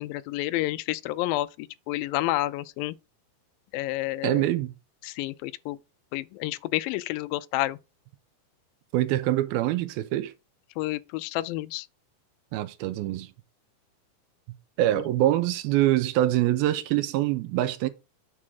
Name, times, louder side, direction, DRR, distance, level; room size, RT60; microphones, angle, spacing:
voice 1, 0.0-3.0 3.7-4.5 5.0-5.8 6.1-7.8 10.8-11.9, left 17 dB, 80° left, 2.2 m, -30 dB
voice 2, 4.2-4.7 8.9-10.3 12.5-13.3 14.8-17.9, right 14 dB, 90° right, 2.6 m, -24 dB
8.5 x 3.6 x 6.2 m
omnidirectional pair, 4.3 m